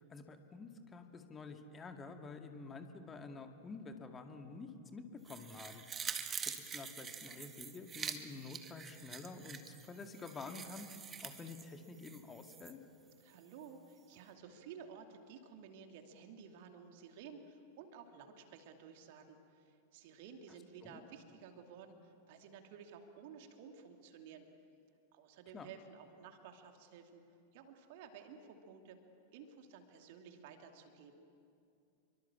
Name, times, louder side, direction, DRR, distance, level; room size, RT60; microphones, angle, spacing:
voice 1, 0.0-5.8 6.4-10.9 11.2-12.8 20.8-21.0 25.5-25.7, left 4 dB, 20° left, 5 dB, 2.2 m, -49 dB
sound 1, 5.3-12.7 13.1-13.2, right 6 dB, 20° right, 1.8 m, -46 dB
voice 2, 13.2-24.5 25.1-27.2 27.5-29.0 29.3-31.3, right 6 dB, 50° right, 5 dB, 2.8 m, -54 dB
28.5 x 23.5 x 7.4 m, 2.6 s
figure-of-eight pair, 90°, 0 cm